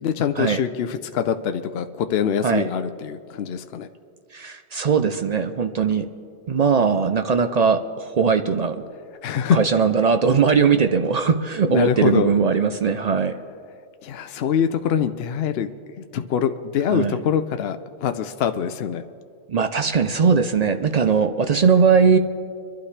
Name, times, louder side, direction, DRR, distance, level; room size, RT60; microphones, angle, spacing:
voice 1, 0.0-3.9 9.2-9.6 11.7-12.3 14.0-15.7 16.1-19.0, left 8 dB, 65° left, 8 dB, 0.7 m, -24 dB
voice 2, 4.3-6.1 6.5-8.8 9.5-13.4 16.9-17.2 19.5-22.2, right 6 dB, 55° right, 8 dB, 0.4 m, -19 dB
24.5 x 11.5 x 3.3 m, 2.3 s
omnidirectional pair, 1.2 m